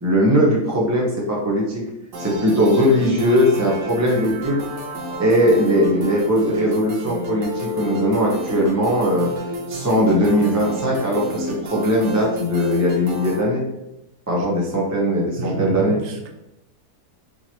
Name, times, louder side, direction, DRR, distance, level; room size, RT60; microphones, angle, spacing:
voice 1, 0.0-1.8 2.2-4.6 5.2-9.3 9.7-13.6 14.3-16.0, equal, 25° right, -3 dB, 0.3 m, -19 dB
sound 1, 2.1-13.4, equal, 75° right, 1.3 m, -31 dB
voice 2, 15.4-16.3, right 1 dB, 55° right, 2 dB, 0.7 m, -29 dB
4.8 x 3.0 x 2.8 m, 0.88 s
omnidirectional pair, 1.7 m